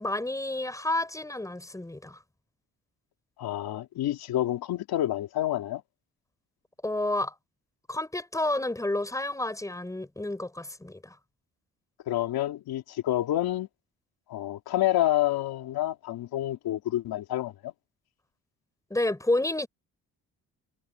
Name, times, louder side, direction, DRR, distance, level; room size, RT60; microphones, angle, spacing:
voice 1, 0.0-2.2 6.8-7.3 7.9-11.2 18.9-19.7, left 1 dB, 10° left, 6.5 m, -30 dB
voice 2, 3.4-5.8 12.1-13.7 14.3-17.7, left 13 dB, 85° left, 2.8 m, -28 dB
cardioid pair, 120°, 36 cm